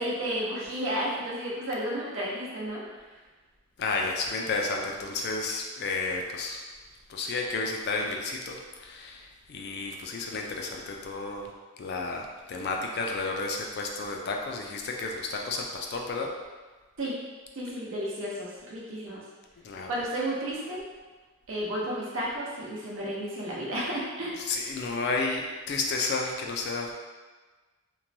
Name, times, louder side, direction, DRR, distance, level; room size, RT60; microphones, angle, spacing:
voice 1, 0.0-3.0 17.0-17.2 17.5-19.2 19.9-20.8 21.5-24.4, right 1 dB, 65° right, -5 dB, 0.7 m, -32 dB
voice 2, 3.8-6.6 7.1-11.5 11.8-16.3 19.6-19.9 24.4-26.9, left 3 dB, 50° left, 1 dB, 0.3 m, -32 dB
3.0 x 2.2 x 2.6 m, 1.3 s
head